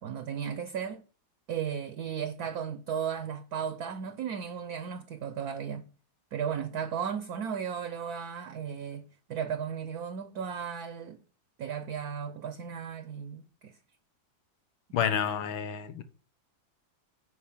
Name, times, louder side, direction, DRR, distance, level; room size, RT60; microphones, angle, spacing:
voice 1, 0.0-1.0 1.5-5.9 6.3-11.2 11.6-13.8, right 7 dB, 60° right, 1.2 m, -35 dB
voice 2, 14.9-16.0, left 8 dB, 80° left, 2.0 m, -29 dB
8.6 x 6.4 x 7.3 m
omnidirectional pair, 2.2 m